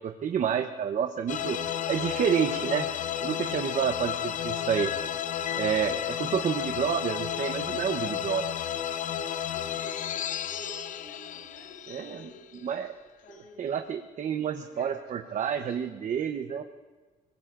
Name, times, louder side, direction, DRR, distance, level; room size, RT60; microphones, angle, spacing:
voice 1, 0.0-1.6 1.9-2.9 3.2-4.9 5.5-8.5 11.9-12.2 12.6-12.9 13.6-16.6, right 8 dB, 45° right, 7 dB, 0.8 m, -29 dB
sound 1, 1.3-12.7, left 10 dB, 50° left, 0.6 m, -32 dB
voice 2, 6.2-6.7 9.4-12.9 13.2-13.7 14.6-15.8, left 2 dB, 75° left, -2 dB, 6.2 m, -50 dB
23.0 x 20.0 x 2.5 m, 1.3 s
cardioid pair, 110°, 17 cm